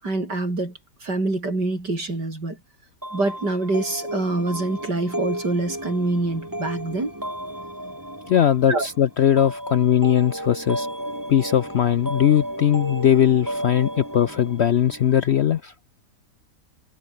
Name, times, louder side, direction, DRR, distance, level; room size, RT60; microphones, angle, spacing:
voice 1, 0.0-2.6 3.1-7.1 8.7-8.9, right 2 dB, 85° right, 7.1 m, -25 dB
sound 1, 3.0-15.6, right 1 dB, 10° right, 4.4 m, -33 dB
voice 2, 8.3-10.9 11.3-15.7, left 10 dB, 65° left, 0.6 m, -19 dB
omnidirectional pair, 1.8 m